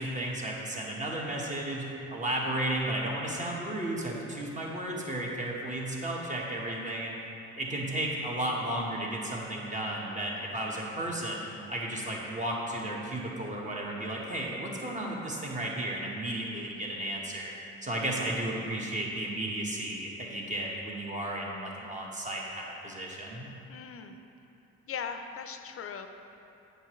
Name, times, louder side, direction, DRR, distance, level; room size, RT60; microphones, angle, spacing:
voice 1, 0.0-7.2 7.5-11.4 11.7-17.5 17.8-23.5, right 1 dB, 25° right, -2 dB, 1.3 m, -34 dB
voice 2, 23.7-24.2 24.9-26.1, left 7 dB, 50° left, 7 dB, 0.5 m, -39 dB
8.1 x 6.7 x 3.1 m, 2.8 s
cardioid pair, 90°, 30 cm